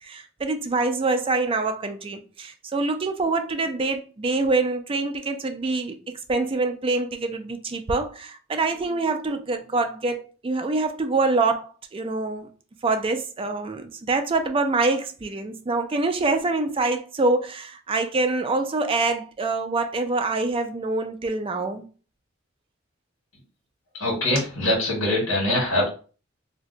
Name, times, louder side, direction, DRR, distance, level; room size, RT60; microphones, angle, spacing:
voice 1, 0.0-6.0 6.3-12.5 12.8-21.8, right 3 dB, 25° right, 0.4 m, -25 dB
voice 2, 23.9-25.9, left 1 dB, 80° left, 1.3 m, -23 dB
2.6 x 2.2 x 3.8 m
head